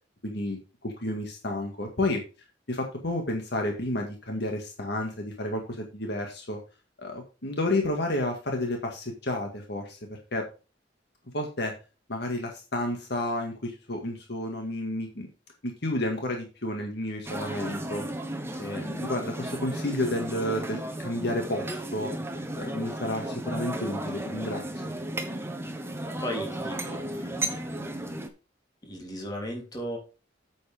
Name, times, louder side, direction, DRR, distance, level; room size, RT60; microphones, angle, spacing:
voice 1, 0.2-2.2 2.7-6.6 7.0-10.5 11.3-11.7 12.1-15.3 15.6-18.1 18.6-22.1 22.6-24.6, left 1 dB, 60° left, 2 dB, 1.9 m, -31 dB
sound 1, 17.3-28.3, right 1 dB, 15° right, 1.2 m, -34 dB
voice 2, 26.2-28.1 28.8-30.0, equal, 20° left, 0 dB, 3.4 m, -37 dB
8.8 x 7.7 x 3.5 m, 0.32 s
head